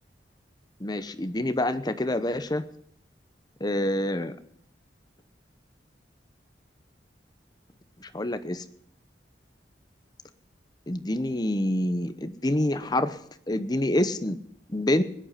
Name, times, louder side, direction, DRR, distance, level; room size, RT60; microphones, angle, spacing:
voice 1, 0.8-2.6 3.6-4.4 8.0-8.6 10.9-13.2 13.5-14.4 14.7-15.0, left 1 dB, 25° left, 11 dB, 0.8 m, -27 dB
19.5 x 10.0 x 5.7 m, 0.68 s
head